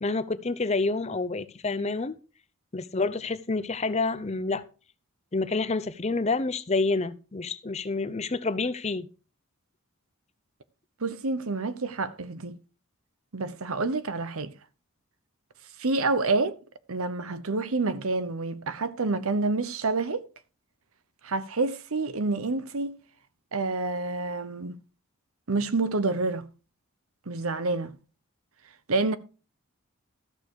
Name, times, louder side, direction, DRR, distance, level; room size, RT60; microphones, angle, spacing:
voice 1, 0.0-2.2 2.7-4.6 5.3-9.1, left 3 dB, 30° left, 0.6 m, -28 dB
voice 2, 11.0-12.6 13.3-14.5 15.8-16.6 16.9-20.2 21.2-23.0 23.5-24.8 25.5-26.5 27.3-27.9 28.9-29.2, right 3 dB, 75° right, 0.9 m, -28 dB
13.5 x 6.8 x 4.6 m
head